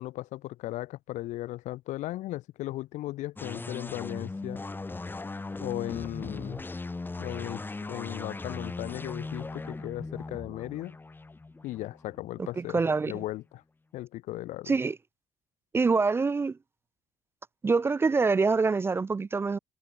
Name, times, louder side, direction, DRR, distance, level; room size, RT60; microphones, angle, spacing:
voice 1, 0.0-4.6 5.6-6.6 7.2-7.6 7.9-11.0 11.6-12.8 13.1-13.6 13.9-14.8, left 16 dB, 75° left, 0.6 m, -36 dB
sound 1, 3.4-12.8, left 3 dB, 15° left, 2.1 m, -38 dB
voice 2, 12.4-13.2 14.7-15.0 15.7-16.6 17.6-19.6, right 4 dB, 20° right, 0.3 m, -25 dB
cardioid pair, 115°, 12 cm